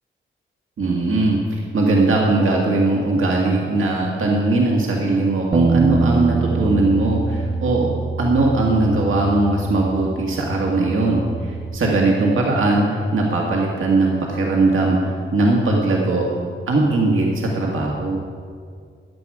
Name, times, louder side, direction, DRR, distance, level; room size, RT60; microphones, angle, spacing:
voice 1, 0.8-7.9 8.2-16.3 16.7-18.2, right 2 dB, 75° right, -2 dB, 1.8 m, -19 dB
Bass guitar, 5.5-11.8, right 4 dB, 20° right, 0.3 m, -24 dB
15.0 x 10.5 x 4.8 m, 2.1 s
wide cardioid pair, 180°, 21 cm